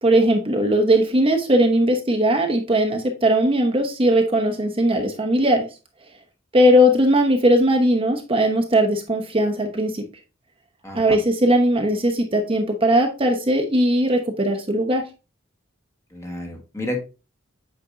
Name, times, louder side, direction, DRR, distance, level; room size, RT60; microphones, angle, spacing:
voice 1, 0.0-5.7 6.5-10.0 10.9-15.0, equal, 25° right, 3 dB, 0.9 m, -19 dB
voice 2, 10.8-11.2 16.1-17.0, left 1 dB, 15° left, 2 dB, 1.3 m, -31 dB
8.5 x 5.2 x 2.5 m, 0.30 s
head